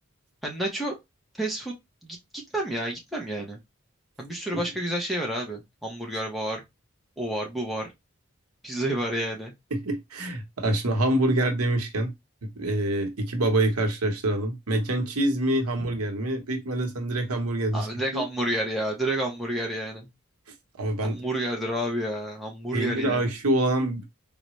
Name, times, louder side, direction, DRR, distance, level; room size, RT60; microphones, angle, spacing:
voice 1, 0.4-1.0 1.4-1.7 2.0-2.2 2.5-3.6 4.2-6.6 7.2-7.8 8.6-9.5 17.7-20.1 21.0-23.2, right 1 dB, ahead, 0.7 m, -30 dB
voice 2, 9.7-12.1 12.6-17.9 18.1-18.2 20.8-21.2 22.7-24.1, right 1 dB, 90° right, 0.9 m, -26 dB
3.9 x 2.1 x 3.0 m
head